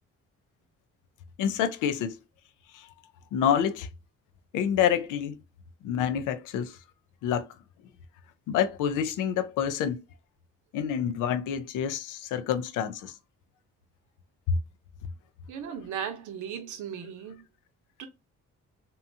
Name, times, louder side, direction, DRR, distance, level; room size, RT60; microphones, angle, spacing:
voice 1, 1.4-2.2 2.7-2.9 3.3-3.9 4.5-5.4 5.8-6.8 7.2-7.5 8.5-10.0 10.7-13.1 14.5-14.6, left 8 dB, 90° left, 0.5 m, -27 dB
voice 2, 15.5-17.4 18.0-18.1, right 8 dB, 80° right, 0.8 m, -36 dB
2.7 x 2.3 x 2.6 m
cardioid pair, 90°, 30 cm